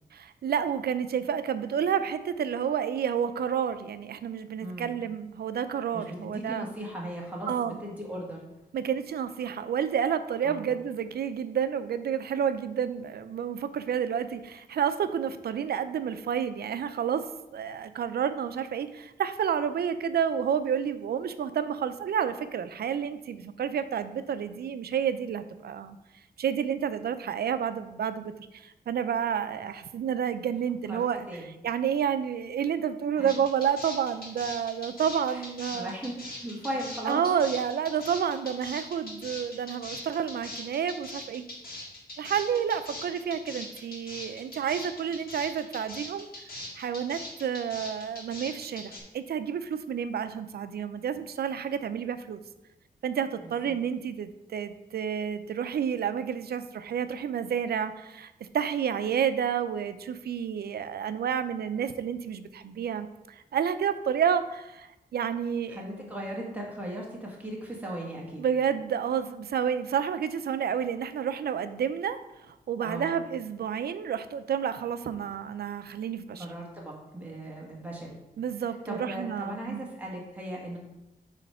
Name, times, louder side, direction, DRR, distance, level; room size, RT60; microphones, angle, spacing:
voice 1, 0.1-6.7 7.5-7.8 8.7-26.0 26.4-35.9 37.0-41.5 42.2-46.3 46.8-52.4 53.0-65.8 68.4-72.2 72.5-76.5 78.4-79.9, right 8 dB, 90° right, 11 dB, 0.5 m, -30 dB
voice 2, 4.6-4.9 5.9-8.4 10.4-10.7 30.9-31.5 33.2-33.3 35.3-36.1 36.4-37.2 53.4-53.8 65.7-68.4 72.8-73.2 76.4-78.2 78.9-80.8, right 1 dB, 10° right, -3 dB, 1.5 m, -37 dB
sound 1, 33.3-49.0, left 1 dB, 70° left, 1.7 m, -41 dB
8.2 x 3.2 x 5.5 m, 0.95 s
wide cardioid pair, 170°, 16 cm